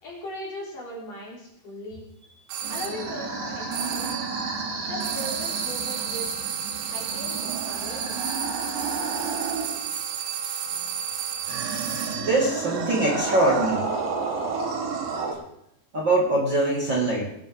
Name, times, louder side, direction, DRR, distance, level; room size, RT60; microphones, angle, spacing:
voice 1, 0.0-2.1 2.7-4.4 4.9-6.3 6.8-8.3, left 1 dB, 45° left, -5 dB, 4.8 m, -38 dB
sound 1, 2.5-3.0 3.7-4.4 5.0-12.4, right 8 dB, 85° right, 3.4 m, -32 dB
sound 2, 2.6-9.9 11.5-15.3, right 4 dB, 65° right, 4.3 m, -31 dB
voice 2, 12.2-13.9 15.9-17.3, right 2 dB, 45° right, -3 dB, 1.5 m, -23 dB
22.5 x 10.5 x 3.6 m, 0.76 s
omnidirectional pair, 5.3 m